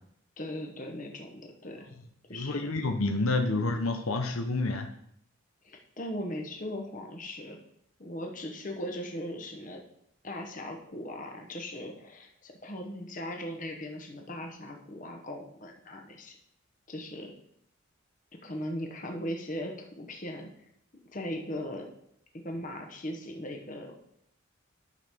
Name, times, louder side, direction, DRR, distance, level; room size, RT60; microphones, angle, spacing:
voice 1, 0.4-1.9 2.3-2.7 5.6-7.6 8.0-9.8 10.2-16.4 16.9-17.3 18.4-20.5 21.1-21.9 22.3-23.9, left 1 dB, 40° left, 2 dB, 1.0 m, -38 dB
voice 2, 2.3-4.9, left 2 dB, 80° left, 6 dB, 0.8 m, -29 dB
11.0 x 6.0 x 3.6 m, 0.72 s
head